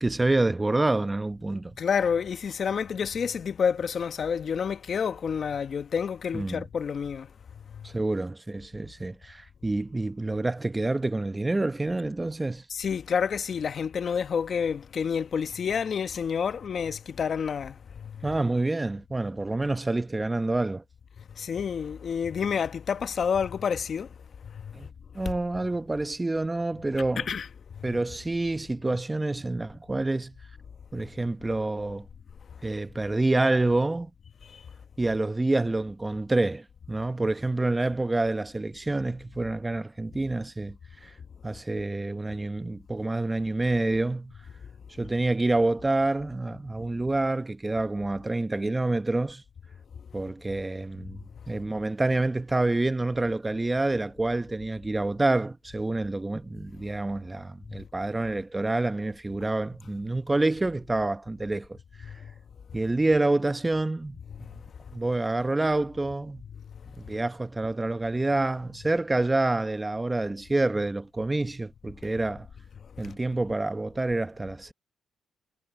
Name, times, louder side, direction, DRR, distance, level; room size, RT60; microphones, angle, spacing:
voice 1, 0.0-1.7 6.3-6.6 7.8-12.6 18.2-20.8 24.7-24.9 25.1-27.3 27.8-30.3 30.9-32.1 32.6-34.1 35.0-40.8 41.0-41.1 41.4-44.3 45.0-49.4 50.1-51.2 51.5-62.1 62.7-64.2 64.9-66.4 67.0-72.5 73.0-74.7, right 2 dB, 15° right, 0.8 m, -27 dB
voice 2, 1.8-7.3 7.7-7.9 12.7-18.3 21.4-24.1 24.5-24.7 25.2-25.3 27.2-27.5 27.8-28.0 34.5-34.6 62.0-62.2 64.3-64.4 73.0-73.1, left 7 dB, 50° left, 1.0 m, -29 dB
cardioid pair, 90°, 0 cm